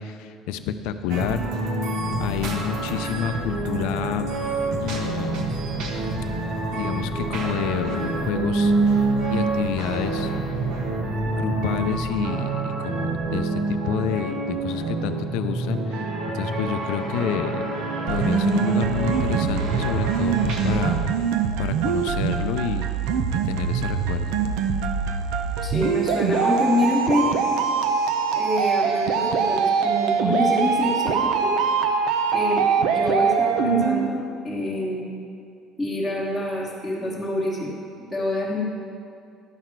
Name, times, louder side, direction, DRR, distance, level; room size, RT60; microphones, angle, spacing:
voice 1, 0.0-1.4 2.2-4.3 4.8-5.4 6.7-9.0 9.3-10.3 11.3-17.7 18.1-21.0 21.6-22.9 23.4-24.3, left 9 dB, 85° left, 10 dB, 0.5 m, -29 dB
sound 1, 1.1-20.9, right 3 dB, 60° right, 1.1 m, -27 dB
sound 2, 2.0-12.1, left 4 dB, 30° left, 0.6 m, -38 dB
sound 3, 18.1-34.1, right 6 dB, 80° right, 0.6 m, -23 dB
voice 2, 25.6-27.3 28.3-31.6 32.3-35.0 35.8-37.8 38.1-38.6, left 1 dB, ahead, -10 dB, 1.3 m, -26 dB
11.5 x 5.8 x 4.6 m, 2.5 s
cardioid pair, 165°, 0 cm